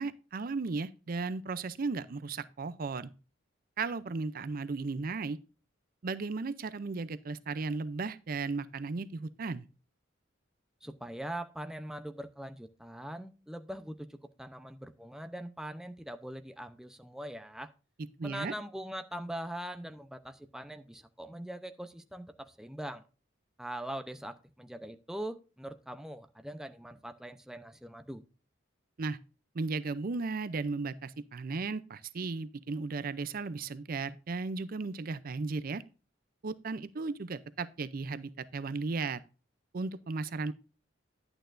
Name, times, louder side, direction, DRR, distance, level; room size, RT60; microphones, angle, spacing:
voice 1, 0.0-3.1 3.8-5.4 6.0-9.7 18.2-18.5 29.0-29.2 29.5-35.8 36.4-39.2 39.7-40.5, right 4 dB, 50° right, 0.5 m, -35 dB
voice 2, 10.8-17.7 18.2-23.0 23.6-28.2, right 1 dB, 5° right, 0.6 m, -42 dB
11.0 x 8.9 x 2.6 m
head